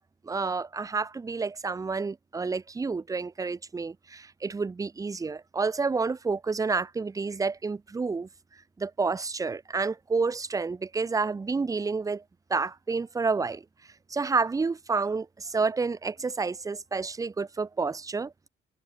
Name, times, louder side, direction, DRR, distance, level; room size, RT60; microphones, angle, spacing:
voice 1, 0.2-8.3 8.8-12.2 12.5-13.6 14.1-18.3, right 4 dB, 15° right, 0.4 m, -29 dB
cardioid pair, 90°, 20 cm